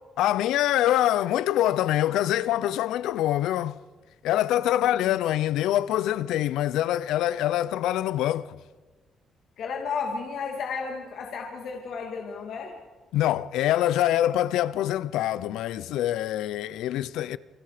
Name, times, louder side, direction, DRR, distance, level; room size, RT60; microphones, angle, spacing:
voice 1, 0.2-3.8 4.2-8.6 13.1-17.4, left 13 dB, 90° left, 0.6 m, -25 dB
voice 2, 4.8-5.2 9.6-12.7, left 5 dB, 70° left, 2.6 m, -33 dB
29.0 x 23.5 x 5.1 m
cardioid pair, 90°, 0 cm